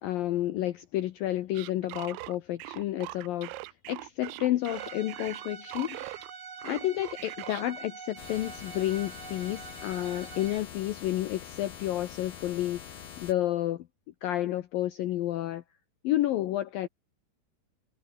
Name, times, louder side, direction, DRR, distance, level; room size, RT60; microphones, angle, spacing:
voice 1, 0.0-3.5 3.9-6.0 6.6-12.8 13.2-13.8 14.2-15.6 16.0-16.9, left 14 dB, 85° left, 2.0 m, -30 dB
sound 1, 1.5-6.3 6.6-7.6, right 20 dB, 85° right, 2.9 m, -41 dB
Bowed string instrument, 4.6-10.6, right 5 dB, 45° right, 5.6 m, -45 dB
sound 2, 8.2-13.3, left 8 dB, 55° left, 4.3 m, -45 dB
omnidirectional pair, 5.5 m